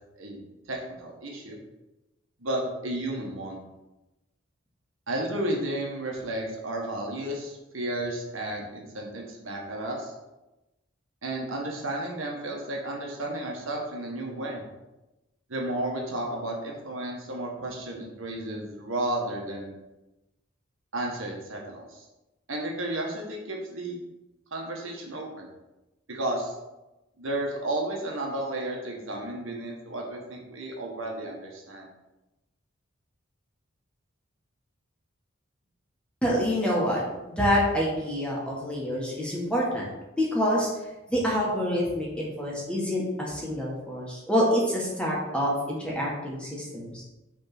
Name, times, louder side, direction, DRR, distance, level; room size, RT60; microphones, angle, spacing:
voice 1, 0.7-1.6 2.4-3.6 5.1-10.1 11.2-14.6 15.5-19.8 20.9-22.1 22.5-24.0 24.5-25.5 26.1-26.5 27.2-31.9, right 1 dB, 75° right, 0 dB, 1.6 m, -33 dB
voice 2, 36.2-39.8 40.2-40.7 41.1-47.0, equal, 5° left, -4 dB, 1.7 m, -27 dB
6.4 x 3.7 x 5.9 m, 1.0 s
head